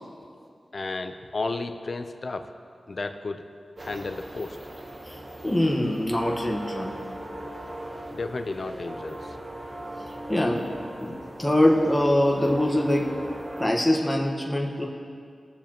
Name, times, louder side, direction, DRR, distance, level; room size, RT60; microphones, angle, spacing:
voice 1, 0.7-2.5 2.9-3.4 3.8-4.6 8.1-9.4, left 3 dB, 60° left, 8 dB, 0.6 m, -32 dB
sound 1, 3.8-13.7, right 1 dB, 40° right, 1.1 m, -39 dB
voice 2, 5.4-7.0 10.3-10.7 11.0-13.1 13.6-14.9, left 1 dB, 15° left, -1 dB, 1.3 m, -23 dB
20.5 x 7.0 x 3.0 m, 2.3 s
cardioid pair, 55°, 0 cm